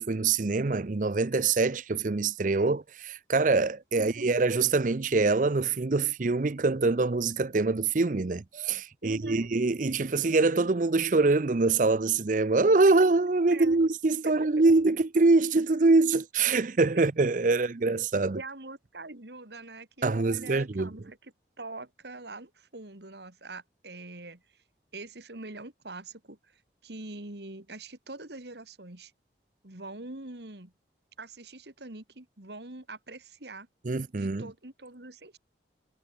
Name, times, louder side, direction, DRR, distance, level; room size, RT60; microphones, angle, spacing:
voice 1, 0.0-18.4 20.0-20.9 33.8-34.5, right 3 dB, 45° right, 0.6 m, -24 dB
voice 2, 9.0-9.5 13.5-13.9 14.2-14.3 18.4-24.4 24.9-29.1 29.6-30.7 31.2-33.7 34.1-35.4, right 2 dB, 65° right, 2.5 m, -44 dB
head